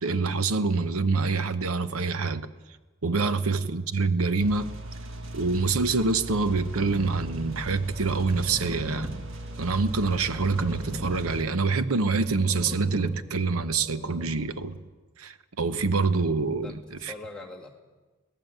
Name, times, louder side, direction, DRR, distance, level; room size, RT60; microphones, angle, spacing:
voice 1, 0.0-2.5 3.0-4.7 5.3-9.2 9.6-14.7 15.2-16.7 17.0-17.1, right 4 dB, 80° right, 0.9 m, -26 dB
voice 2, 3.1-3.4 16.6-17.7, left 2 dB, 5° left, 2.4 m, -43 dB
sound 1, 4.4-11.4, right 1 dB, 60° right, 1.7 m, -38 dB
sound 2, 6.8-14.7, equal, 25° right, 2.5 m, -41 dB
22.0 x 18.0 x 8.0 m
head